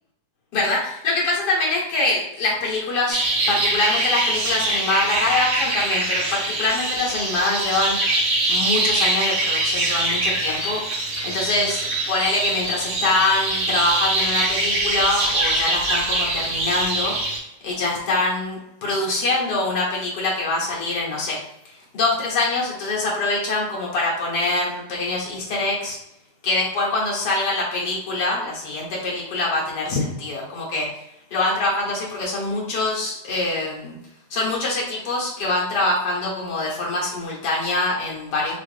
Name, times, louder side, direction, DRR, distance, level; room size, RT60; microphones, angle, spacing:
voice 1, 0.5-3.2 3.5-8.0 8.5-10.8 11.2-17.2 17.6-21.4 21.9-26.0 26.4-30.9 31.3-33.9 34.3-38.6, left 2 dB, 55° left, -4 dB, 1.2 m, -24 dB
sound 1, 3.1-17.4, right 2 dB, 65° right, 2.1 m, -23 dB
4.9 x 2.5 x 3.3 m, 0.81 s
omnidirectional pair, 3.4 m